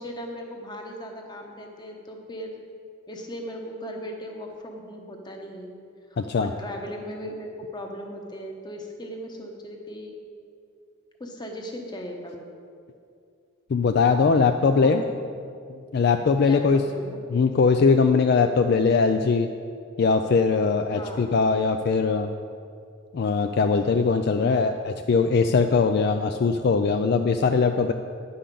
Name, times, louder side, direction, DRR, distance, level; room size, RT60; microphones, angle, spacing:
voice 1, 0.0-2.6 3.1-5.7 6.1-10.2 11.2-12.5 14.8-15.0 16.4-17.2 20.9-21.3 24.4-24.7, equal, 20° left, 2 dB, 1.0 m, -37 dB
voice 2, 6.2-6.5 13.7-15.0 15.7-16.8 17.3-19.5 20.0-22.3 23.1-27.9, left 4 dB, 50° left, 6 dB, 0.3 m, -21 dB
9.9 x 5.6 x 6.8 m, 2.4 s
head